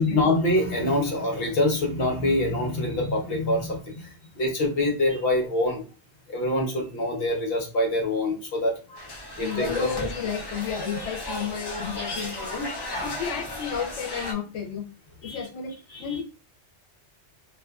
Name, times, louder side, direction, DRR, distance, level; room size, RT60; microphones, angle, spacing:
voice 1, 0.0-5.8 6.3-10.1 15.2-15.5 15.9-16.2, left 1 dB, 60° left, 0 dB, 1.0 m, -25 dB
sound 1, 9.0-14.3, left 1 dB, 30° left, 0.5 m, -34 dB
voice 2, 9.4-12.7 13.0-14.8 15.2-15.7 16.0-16.2, left 7 dB, 85° left, 0 dB, 0.9 m, -32 dB
2.5 x 2.4 x 2.3 m, 0.34 s
omnidirectional pair, 1.2 m